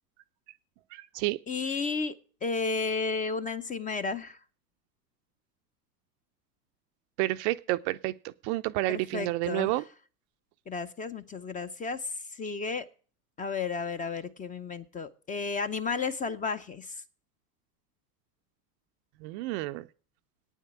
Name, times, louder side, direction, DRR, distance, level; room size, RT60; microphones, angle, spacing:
voice 1, 0.9-1.4 7.2-9.8 19.2-19.9, right 18 dB, 45° right, 11 dB, 0.5 m, -30 dB
voice 2, 1.5-4.4 8.8-9.8 10.7-12.9 13.4-17.0, left 4 dB, 15° left, 12 dB, 0.6 m, -33 dB
9.2 x 7.3 x 8.1 m, 0.41 s
hypercardioid pair, 100°, 48 cm